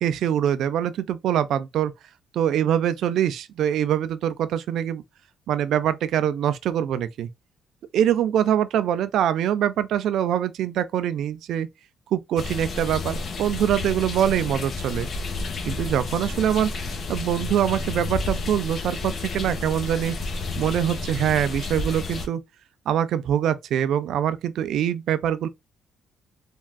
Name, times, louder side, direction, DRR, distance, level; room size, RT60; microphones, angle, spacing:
voice 1, 0.0-1.9 2.3-5.0 5.5-7.3 7.9-11.7 12.1-15.1 15.6-16.7 17.1-20.2 20.6-22.4 22.9-25.5, right 10 dB, 75° right, 0.3 m, -24 dB
sound 1, 12.4-22.3, left 3 dB, 55° left, 0.7 m, -31 dB
3.4 x 2.3 x 2.2 m
cardioid pair, 90°, 0 cm